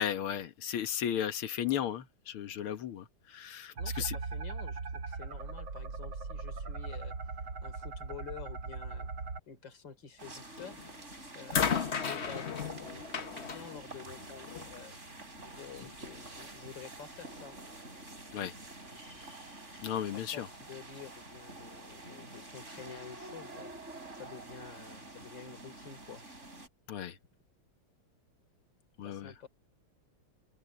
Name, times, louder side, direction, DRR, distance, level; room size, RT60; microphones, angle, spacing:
voice 1, 0.0-4.2 18.3-18.5 19.8-20.5 26.9-27.2 29.0-29.3, left 9 dB, 80° left, 2.2 m, -35 dB
voice 2, 3.8-7.2 7.6-9.1 9.5-15.0 15.4-17.6 18.9-19.4 20.1-23.7 24.1-26.2 29.0-29.5, left 6 dB, 55° left, 4.1 m, -50 dB
sound 1, 3.8-9.4, right 4 dB, 60° right, 4.0 m, -39 dB
sound 2, 10.2-26.7, right 2 dB, 30° right, 6.0 m, -48 dB
sound 3, 10.6-10.9 11.5-14.8 15.8-15.9, left 7 dB, 40° left, 1.1 m, -34 dB
open air
omnidirectional pair, 2.4 m